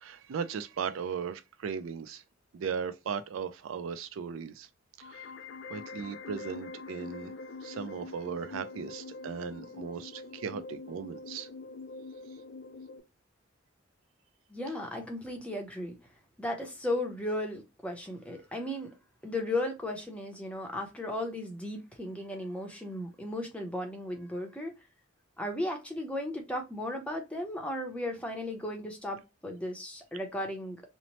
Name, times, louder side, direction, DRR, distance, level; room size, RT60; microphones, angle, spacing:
voice 1, 0.0-2.2 2.5-4.7 5.0-5.3 5.7-7.3 7.6-11.5, right 6 dB, 80° right, 0.4 m, -37 dB
sound 1, 5.0-13.0, left 3 dB, 55° left, 0.3 m, -44 dB
voice 2, 14.5-16.0 16.4-18.9 19.2-24.7 25.4-30.8, left 1 dB, 5° left, 0.6 m, -35 dB
2.9 x 2.0 x 2.8 m
head